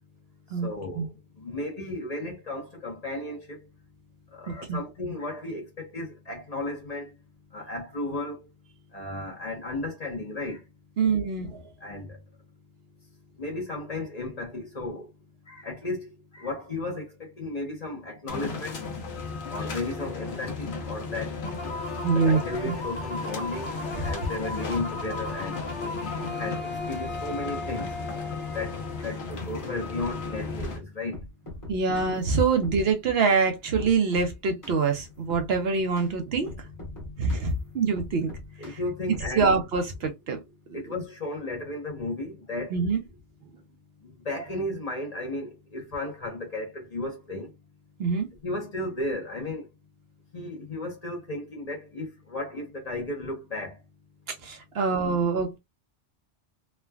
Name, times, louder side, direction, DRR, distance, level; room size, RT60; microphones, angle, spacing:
voice 1, 0.6-1.1 1.4-3.6 4.3-7.1 7.5-8.4 8.9-10.6 11.8-12.2 13.4-15.1 15.5-18.8 19.5-21.3 22.1-23.7 24.0-25.6 26.4-27.9 28.5-31.2 38.6-39.6 40.7-42.7 44.2-47.5 48.4-49.7 50.3-53.7, left 2 dB, 40° left, 0.8 m, -34 dB
voice 2, 4.5-4.8 11.0-11.7 22.0-22.7 31.7-36.5 37.2-38.3 38.7-38.8 39.3-40.4 40.7-40.8 42.7-43.0 48.0-48.3 54.3-55.6, right 5 dB, 65° right, 0.8 m, -25 dB
sound 1, 18.3-30.8, left 4 dB, 65° left, 1.1 m, -35 dB
sound 2, 21.4-29.0, left 1 dB, 85° left, 1.5 m, -38 dB
sound 3, 29.3-30.1 30.6-30.8 31.1-32.1 32.6-32.8 33.3-33.4 33.8-34.3 34.6-34.8 35.3-35.5 36.0-36.1 36.5-37.5 38.0-38.8 39.1-39.6, left 2 dB, 15° left, 1.1 m, -41 dB
3.3 x 2.2 x 2.2 m
omnidirectional pair, 1.2 m